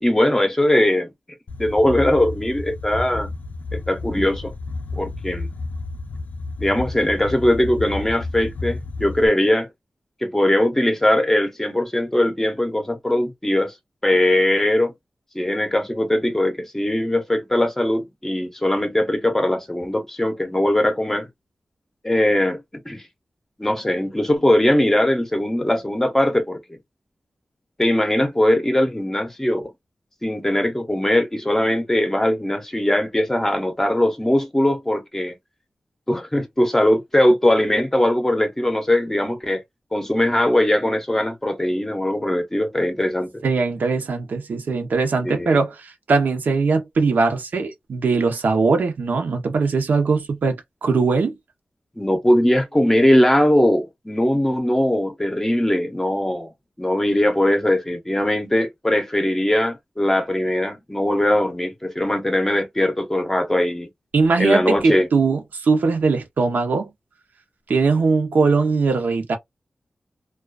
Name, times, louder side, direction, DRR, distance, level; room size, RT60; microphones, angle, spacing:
voice 1, 0.0-1.1 1.6-3.3 3.7-4.5 5.0-5.5 6.6-9.7 10.2-13.7 14.0-14.9 15.3-21.3 22.0-23.0 23.6-26.8 27.8-29.6 30.2-35.3 36.1-39.6 39.9-43.3 45.2-45.6 52.0-56.5 56.8-63.9 64.4-65.1, left 1 dB, 15° left, 0.6 m, -20 dB
sound 1, 1.5-9.3, left 3 dB, 70° left, 0.4 m, -31 dB
voice 2, 43.4-51.3 64.1-66.9 67.7-69.4, right 4 dB, 80° right, 0.7 m, -20 dB
2.4 x 2.3 x 2.3 m
wide cardioid pair, 130°, 3 cm